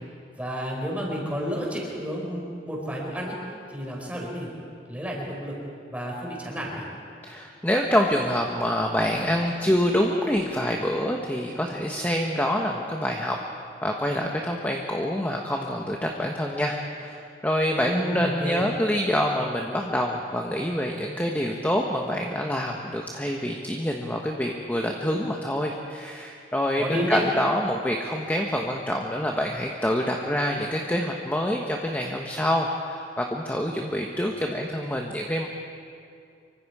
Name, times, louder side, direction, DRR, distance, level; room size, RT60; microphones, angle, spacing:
voice 1, 0.4-3.4 3.7-4.5 4.9-5.5 5.9-6.9 17.8-18.6 26.8-27.2, equal, 10° right, -2 dB, 4.8 m, -31 dB
voice 2, 7.2-13.4 13.8-35.5, equal, 10° left, 0 dB, 1.2 m, -26 dB
25.0 x 24.5 x 4.9 m, 2.4 s
head